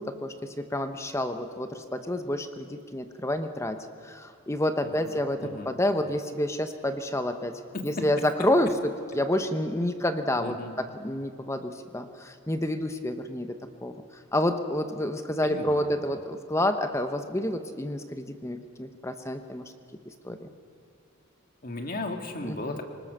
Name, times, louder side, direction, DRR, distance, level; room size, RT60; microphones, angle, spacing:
voice 1, 0.0-3.8 4.0-14.0 14.3-19.7 20.2-20.5 22.4-22.8, left 1 dB, 15° left, 8 dB, 0.9 m, -29 dB
voice 2, 4.8-5.7 7.7-8.1 10.4-10.7 15.4-15.9 21.6-22.8, left 2 dB, 40° left, 4 dB, 1.8 m, -36 dB
24.5 x 19.5 x 6.7 m, 2.3 s
head